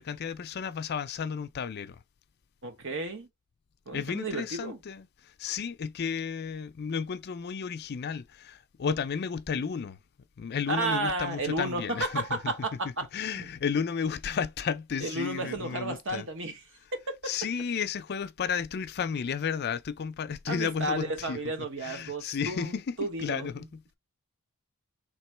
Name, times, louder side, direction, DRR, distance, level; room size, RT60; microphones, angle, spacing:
voice 1, 0.0-2.0 3.9-10.0 10.4-12.5 13.1-16.3 17.2-21.4 21.8-23.8, left 6 dB, 45° left, 0.4 m, -33 dB
voice 2, 2.6-3.3 3.9-4.8 10.7-13.1 13.3-13.5 15.0-16.6 16.9-17.0 20.5-23.5, right 2 dB, 60° right, 1.1 m, -32 dB
3.6 x 3.0 x 4.4 m
head